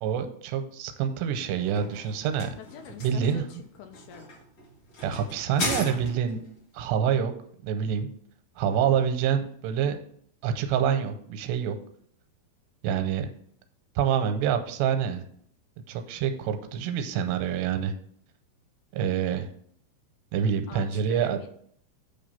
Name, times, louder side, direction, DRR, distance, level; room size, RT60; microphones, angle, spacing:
voice 1, 0.0-2.5 3.0-3.4 5.0-6.4 6.7-7.3 7.6-8.1 8.6-10.0 10.4-11.8 12.8-13.3 14.0-15.2 15.9-17.9 18.9-19.5 20.3-21.4, right 8 dB, 85° right, 7 dB, 2.8 m, -26 dB
sound 1, 1.3-6.5, left 1 dB, 45° left, 2.3 m, -36 dB
voice 2, 2.6-4.3 20.7-21.5, left 8 dB, 80° left, 6 dB, 2.4 m, -45 dB
8.6 x 3.3 x 5.6 m, 0.63 s
omnidirectional pair, 4.9 m